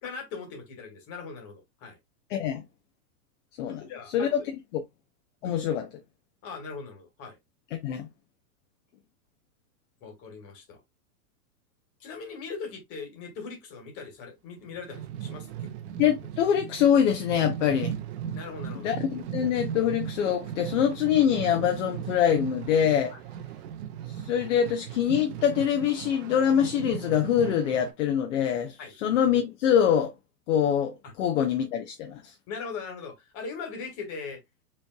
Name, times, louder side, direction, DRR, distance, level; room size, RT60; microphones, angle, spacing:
voice 1, 0.0-2.0 3.9-4.5 5.4-5.6 6.4-7.4 10.0-10.8 12.0-15.7 18.3-18.9 23.1-23.2 28.8-28.9 31.0-31.1 32.5-34.4, left 5 dB, 30° left, 1.8 m, -40 dB
voice 2, 2.3-2.6 3.6-3.8 4.1-4.4 5.4-5.9 7.8-8.1 16.0-17.9 18.8-23.1 24.2-30.1 30.5-32.3, left 9 dB, 50° left, 0.8 m, -24 dB
sound 1, 14.6-27.9, right 9 dB, 45° right, 0.6 m, -37 dB
5.4 x 3.3 x 2.3 m
supercardioid pair, 150°, 47 cm